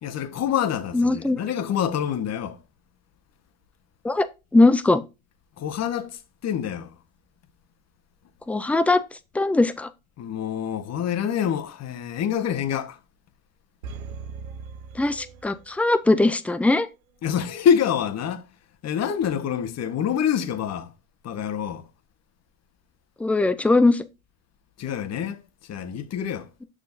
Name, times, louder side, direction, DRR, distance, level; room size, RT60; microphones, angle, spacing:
voice 1, 0.0-2.6 5.6-6.9 10.2-13.0 17.2-18.4 18.8-20.9 21.2-21.8 24.8-25.4 25.7-26.5, left 8 dB, 40° left, 1.2 m, -26 dB
voice 2, 0.9-1.4 4.0-4.3 4.5-5.0 8.5-9.0 9.3-9.9 14.9-16.9 23.2-24.0, left 2 dB, 5° left, 0.5 m, -20 dB
sound 1, 13.8-16.0 16.3-16.4, right 4 dB, 85° right, 0.9 m, -39 dB
7.4 x 6.2 x 2.6 m
hypercardioid pair, 85°, 41 cm